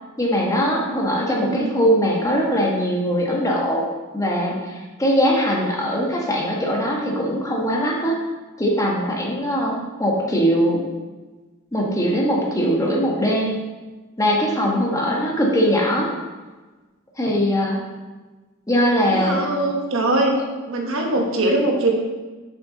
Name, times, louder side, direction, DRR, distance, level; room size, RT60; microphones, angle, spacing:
voice 1, 0.2-3.8 4.1-8.2 8.6-10.8 11.7-13.6 14.2-16.1 17.2-17.8 18.7-19.4 21.2-21.5, equal, 15° left, -2 dB, 1.3 m, -21 dB
voice 2, 1.2-1.7 19.0-20.3 20.7-21.9, right 2 dB, 65° right, 1 dB, 1.2 m, -22 dB
7.0 x 6.4 x 3.9 m, 1.2 s
head